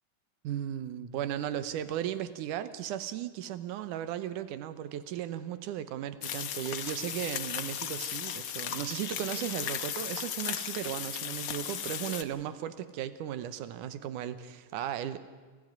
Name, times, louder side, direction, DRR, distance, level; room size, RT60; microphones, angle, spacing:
voice 1, 0.4-15.2, right 11 dB, 75° right, 12 dB, 2.4 m, -36 dB
sound 1, 6.2-12.2, left 9 dB, 70° left, 1.3 m, -36 dB
29.5 x 12.5 x 9.5 m, 1.5 s
omnidirectional pair, 3.8 m